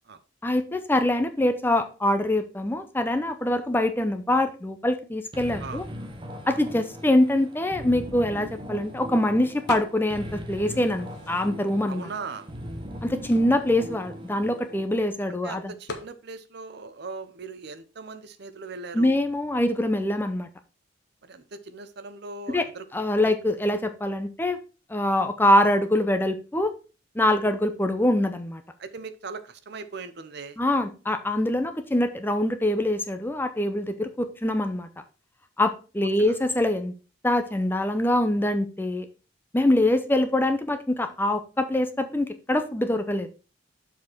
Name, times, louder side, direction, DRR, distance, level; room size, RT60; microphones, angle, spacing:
voice 1, 0.4-5.8 6.5-12.1 13.0-15.7 18.9-20.5 22.5-22.6 22.9-24.6 24.9-26.7 27.2-28.6 30.6-34.9 35.6-36.9 37.2-39.1 39.5-43.3, left 1 dB, 10° left, 8 dB, 0.5 m, -24 dB
sound 1, 5.3-14.9, equal, 25° right, 0.9 m, -39 dB
sound 2, 9.7-10.3 10.6-11.8 12.5-12.6 12.8-15.0 15.9-16.2, left 3 dB, 55° left, 1.0 m, -41 dB
voice 2, 11.9-12.5 15.3-19.2 21.2-22.8 23.2-23.3 23.6-23.7 28.8-30.6 36.2-36.4, right 4 dB, 55° right, 11 dB, 0.7 m, -39 dB
7.2 x 4.3 x 4.4 m, 0.34 s
head